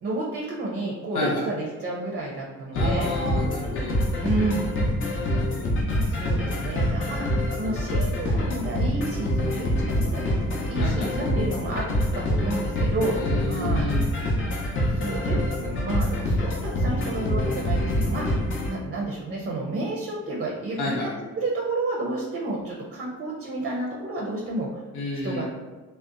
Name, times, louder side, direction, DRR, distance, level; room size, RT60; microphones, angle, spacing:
voice 1, 0.0-3.1 4.2-4.6 5.6-5.7 6.0-11.9 12.1-13.9 14.9-18.4 18.7-24.8 25.2-25.4, right 2 dB, 35° right, -2 dB, 0.5 m, -31 dB
voice 2, 2.7-4.0 10.8-11.3 13.1-14.1 20.8-21.1 24.9-25.4, left 1 dB, 90° left, -5 dB, 0.5 m, -30 dB
sound 1, 2.8-18.7, left 1 dB, 40° left, 0.6 m, -25 dB
2.6 x 2.1 x 2.4 m, 1.3 s
cardioid pair, 90°, 30 cm